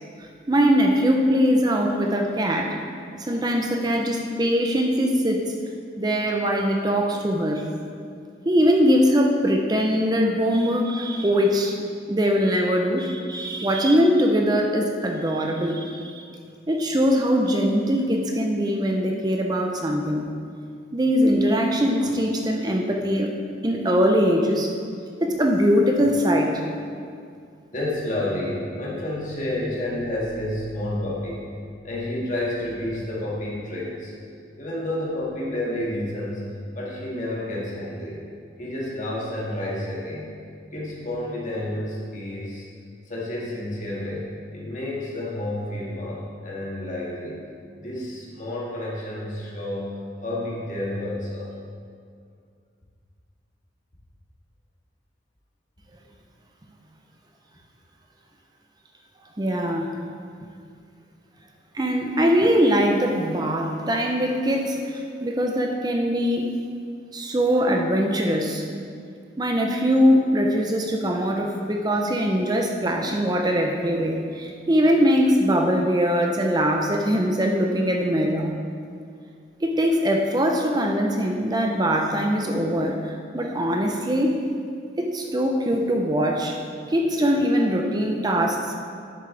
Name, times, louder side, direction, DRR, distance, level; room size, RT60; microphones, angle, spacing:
voice 1, 0.5-2.8 3.2-5.5 6.0-7.6 8.4-11.8 12.1-16.2 16.7-20.3 20.9-23.3 23.6-24.7 25.2-26.6 59.4-59.9 61.7-66.4 67.1-68.6 69.4-78.5 79.6-84.4 85.0-86.6 86.9-88.7, equal, 20° right, 1 dB, 0.6 m, -22 dB
voice 2, 27.7-31.4 31.8-34.1 34.6-36.4 36.7-38.2 38.6-40.3 40.7-42.6 43.0-47.4 47.7-50.0 50.2-51.5, left 1 dB, 40° left, -5 dB, 1.8 m, -30 dB
10.5 x 7.4 x 3.3 m, 2.2 s
head